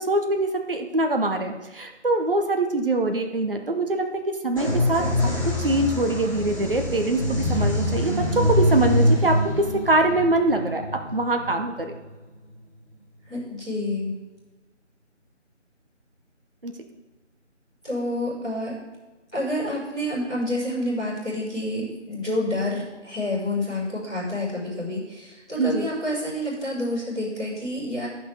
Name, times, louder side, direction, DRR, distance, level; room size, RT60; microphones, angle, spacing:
voice 1, 0.0-5.0 5.4-10.8 11.1-11.9 16.6-16.7 25.6-25.9, right 2 dB, 45° right, 4 dB, 1.0 m, -23 dB
sound 1, 4.6-12.1, left 1 dB, 25° left, 3.0 m, -24 dB
voice 2, 13.3-14.1 17.8-18.7 19.3-28.1, left 1 dB, 5° left, -18 dB, 2.0 m, -28 dB
13.0 x 6.1 x 3.7 m, 1.2 s
figure-of-eight pair, 165°, 37 cm